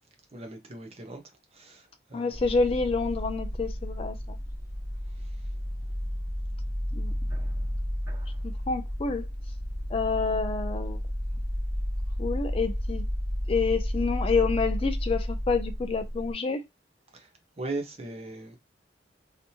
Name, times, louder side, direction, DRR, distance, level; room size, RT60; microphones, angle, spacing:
voice 1, 0.3-1.2 1.5-2.4 17.1-17.3 17.6-18.6, right 2 dB, 35° right, 0.8 m, -38 dB
voice 2, 2.1-4.4 6.9-7.1 8.4-9.3 9.9-11.0 12.2-13.0 13.5-16.6, left 4 dB, 30° left, 0.3 m, -28 dB
sound 1, 2.3-16.3, equal, 15° right, 1.4 m, -32 dB
3.3 x 2.9 x 2.7 m
head